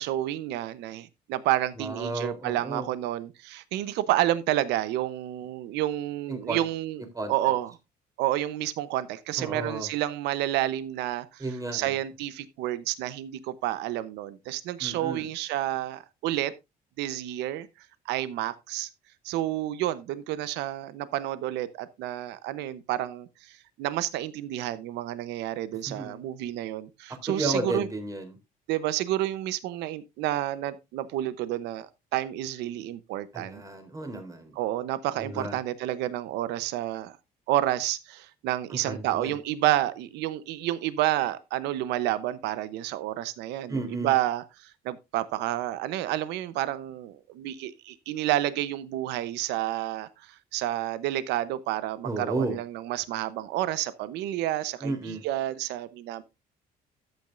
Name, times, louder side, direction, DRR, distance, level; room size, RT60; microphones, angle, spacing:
voice 1, 0.0-7.0 7.3-7.7 8.2-11.4 11.7-16.5 17.0-17.7 18.1-18.9 19.2-27.9 28.7-33.6 34.6-37.2 37.5-56.2, right 14 dB, 90° right, 0.8 m, -30 dB
voice 2, 1.8-2.9 6.3-6.6 7.1-7.3 9.4-9.9 11.4-11.9 14.8-15.3 25.9-26.2 27.3-28.4 33.3-34.5 35.2-35.6 38.7-39.3 43.7-44.1 52.0-52.6 54.8-55.2, right 2 dB, 20° right, 3.4 m, -33 dB
13.0 x 9.0 x 2.5 m
cardioid pair, 110°, 17 cm